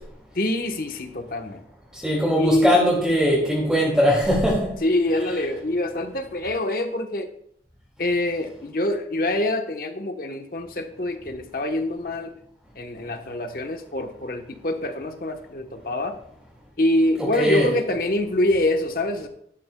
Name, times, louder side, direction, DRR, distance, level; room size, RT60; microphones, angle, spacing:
voice 1, 0.3-1.6 2.4-2.8 4.8-7.3 8.0-12.3 12.7-16.2 16.8-19.3, left 1 dB, 55° left, 5 dB, 1.1 m, -25 dB
voice 2, 2.0-4.7 17.3-17.8, equal, 5° right, -6 dB, 2.4 m, -20 dB
12.0 x 11.5 x 2.3 m, 0.68 s
head